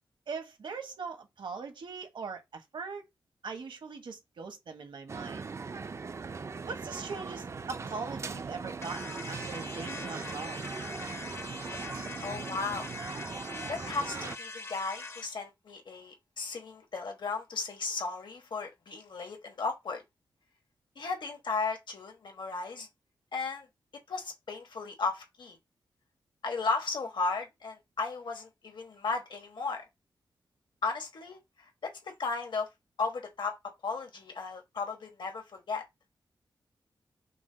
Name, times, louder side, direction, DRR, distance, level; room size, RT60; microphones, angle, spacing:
voice 1, 0.3-3.1 3.4-5.5 6.6-10.6, right 5 dB, 80° right, 1.2 m, -41 dB
sound 1, 5.1-14.4, right 4 dB, 35° right, 0.3 m, -39 dB
sound 2, 8.8-15.3, left 3 dB, 35° left, 0.5 m, -43 dB
voice 2, 12.2-13.3 13.7-20.0 21.0-22.9 23.3-23.7 24.1-25.6 26.4-29.8 30.8-32.7 33.0-33.6 33.8-35.8, left 4 dB, 70° left, 1.2 m, -35 dB
6.1 x 2.2 x 3.8 m
wide cardioid pair, 135°, 8 cm